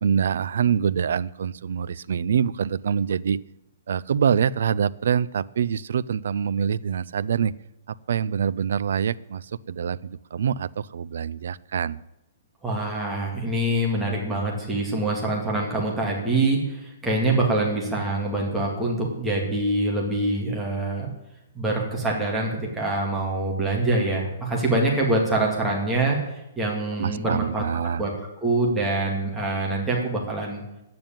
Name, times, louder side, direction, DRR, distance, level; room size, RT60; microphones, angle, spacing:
voice 1, 0.0-3.4 3.9-7.5 8.1-12.0 27.0-28.0, right 7 dB, 60° right, 19 dB, 0.5 m, -25 dB
voice 2, 12.6-21.1 21.5-26.2 26.6-28.1 28.4-30.6, right 2 dB, 5° right, -3 dB, 2.3 m, -25 dB
10.5 x 9.4 x 8.9 m, 0.90 s
hypercardioid pair, 180°, 0 cm